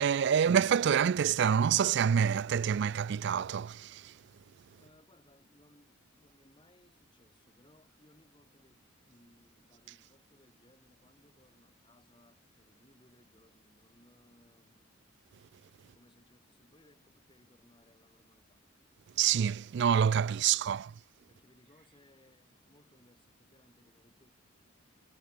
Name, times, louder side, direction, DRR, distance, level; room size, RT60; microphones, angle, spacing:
voice 1, 0.0-4.1 19.2-20.8, right 8 dB, 55° right, 0.3 m, -27 dB
voice 2, 4.7-14.9 15.8-18.7 20.4-20.9 21.3-24.3, left 1 dB, 25° left, 6.4 m, -65 dB
head